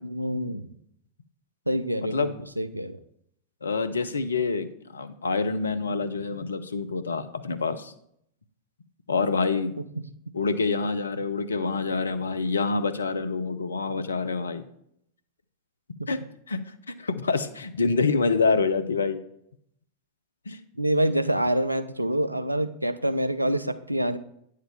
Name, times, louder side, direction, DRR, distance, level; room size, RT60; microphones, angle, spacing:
voice 1, 0.0-0.7 1.7-3.0 9.8-10.0 16.0-16.1 20.8-24.2, right 1 dB, 85° right, 12 dB, 0.4 m, -26 dB
voice 2, 3.6-4.7 4.9-7.9 9.1-9.7 10.3-14.6 16.1-16.2 16.5-16.6 16.9-19.2 20.5-20.6, left 4 dB, 75° left, 12 dB, 0.6 m, -26 dB
9.1 x 6.6 x 3.5 m, 0.73 s
figure-of-eight pair, 90°, 0 cm